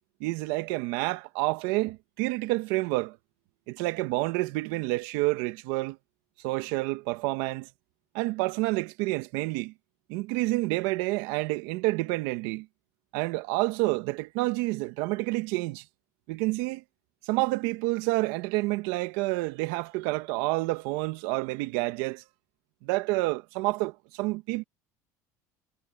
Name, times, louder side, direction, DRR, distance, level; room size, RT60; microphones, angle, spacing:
voice 1, 0.2-3.2 3.7-6.0 6.4-7.7 8.1-9.7 10.1-12.7 13.1-15.8 16.3-16.8 17.3-22.2 22.8-24.6, right 21 dB, 80° right, 1.5 m, -29 dB
supercardioid pair, 100°, 8 cm